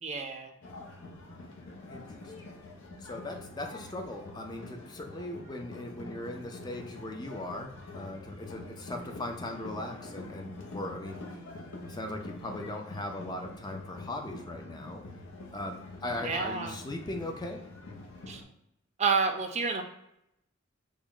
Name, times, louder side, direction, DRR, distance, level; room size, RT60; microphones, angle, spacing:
voice 1, 0.0-0.5 16.2-16.8 18.3-18.4 19.0-19.8, right 5 dB, 35° right, 5 dB, 0.4 m, -29 dB
sound 1, 0.6-18.4, left 2 dB, 65° left, 0.7 m, -45 dB
voice 2, 1.9-2.3 3.0-11.4 11.8-15.0 15.5-17.6, left 1 dB, 20° left, 3 dB, 0.4 m, -39 dB
3.5 x 2.1 x 3.7 m, 0.81 s
head